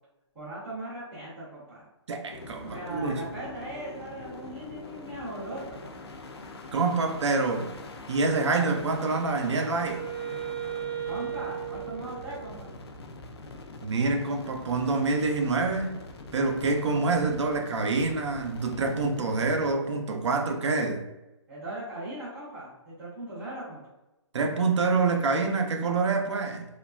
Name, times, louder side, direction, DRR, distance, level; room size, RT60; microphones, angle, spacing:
voice 1, 0.3-1.8 2.7-6.2 11.0-12.7 21.5-23.8, right 1 dB, ahead, -14 dB, 0.4 m, -39 dB
voice 2, 2.1-3.2 6.7-7.7 8.1-10.0 13.8-16.0 16.3-21.0 24.3-26.7, right 3 dB, 70° right, 4 dB, 0.5 m, -26 dB
sound 1, 2.3-19.7, left 3 dB, 60° left, 0.4 m, -44 dB
Wind instrument woodwind instrument, 8.9-12.8, right 10 dB, 25° right, 0.8 m, -37 dB
3.1 x 2.3 x 2.2 m, 0.97 s
hypercardioid pair, 175°, 15 cm